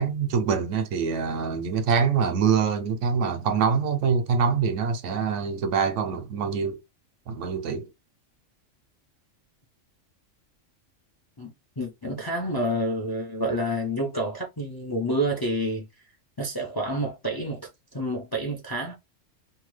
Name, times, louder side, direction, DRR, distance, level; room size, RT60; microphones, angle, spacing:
voice 1, 0.0-6.8 7.3-7.9, right 6 dB, 75° right, 0.9 m, -25 dB
voice 2, 11.4-15.9 16.4-19.0, equal, 30° left, 0.4 m, -29 dB
2.8 x 2.3 x 3.1 m
omnidirectional pair, 1.3 m